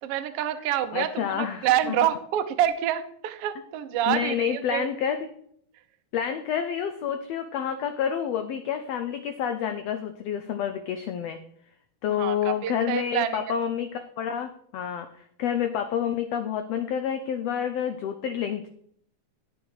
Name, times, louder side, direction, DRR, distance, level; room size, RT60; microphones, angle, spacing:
voice 1, 0.0-4.9 12.1-13.4, right 11 dB, 80° right, 9 dB, 1.3 m, -27 dB
voice 2, 0.9-2.0 4.1-5.3 6.1-11.4 12.0-18.7, left 8 dB, 80° left, 7 dB, 1.4 m, -29 dB
11.0 x 7.5 x 4.7 m, 0.67 s
omnidirectional pair, 3.7 m